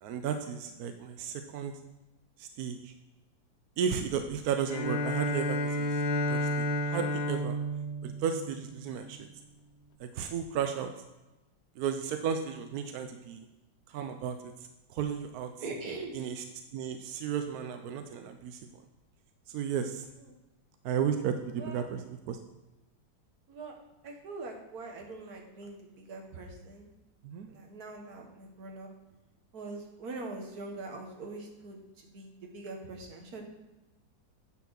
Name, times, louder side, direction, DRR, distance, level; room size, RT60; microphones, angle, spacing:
voice 1, 0.0-1.7 2.4-2.9 3.8-5.9 6.3-7.6 8.0-9.3 10.0-10.9 11.8-13.5 13.9-14.4 14.9-15.7 16.1-16.4 16.7-18.6 19.5-20.0 20.8-22.4 27.2-27.5, right 7 dB, 70° right, 7 dB, 0.9 m, -34 dB
Bowed string instrument, 4.6-9.1, equal, 80° left, 1.5 m, -31 dB
voice 2, 15.6-16.1 20.3-20.4 21.6-21.9 23.5-23.7 24.0-26.9 27.5-28.9 29.5-33.4, right 3 dB, 55° right, 2 dB, 1.7 m, -42 dB
9.0 x 4.5 x 6.2 m, 1.0 s
omnidirectional pair, 2.0 m